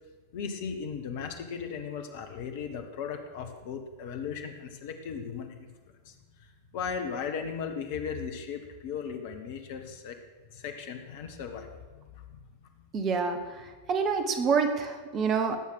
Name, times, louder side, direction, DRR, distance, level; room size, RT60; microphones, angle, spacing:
voice 1, 0.3-5.7 6.0-6.1 6.4-10.2 10.5-12.4, left 6 dB, 50° left, 6 dB, 1.7 m, -37 dB
voice 2, 12.9-15.6, right 5 dB, 30° right, 7 dB, 1.6 m, -27 dB
18.0 x 8.1 x 6.5 m, 1.3 s
figure-of-eight pair, 90°, 0 cm